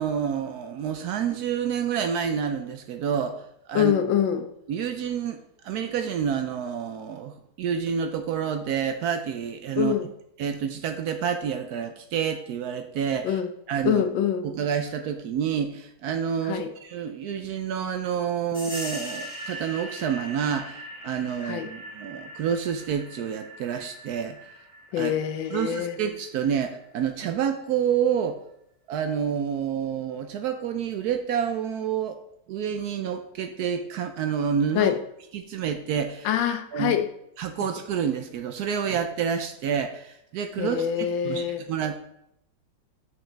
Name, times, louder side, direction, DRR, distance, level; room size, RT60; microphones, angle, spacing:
voice 1, 0.0-3.9 4.7-9.9 10.4-13.4 13.7-14.0 14.4-24.4 25.0-25.1 25.5-28.4 28.9-32.2 32.5-34.9 35.3-36.3 36.7-36.9 37.4-42.0, right 7 dB, 70° right, 7 dB, 0.9 m, -28 dB
voice 2, 3.7-4.5 9.8-10.1 13.2-13.5 13.8-14.4 16.4-16.7 21.4-21.7 24.9-25.9 34.8-35.0 36.2-37.1 40.6-41.6, left 9 dB, 90° left, 9 dB, 1.4 m, -25 dB
sound 1, 18.5-26.8, right 1 dB, 5° right, 1.6 m, -41 dB
6.3 x 6.1 x 3.3 m, 0.76 s
omnidirectional pair, 2.0 m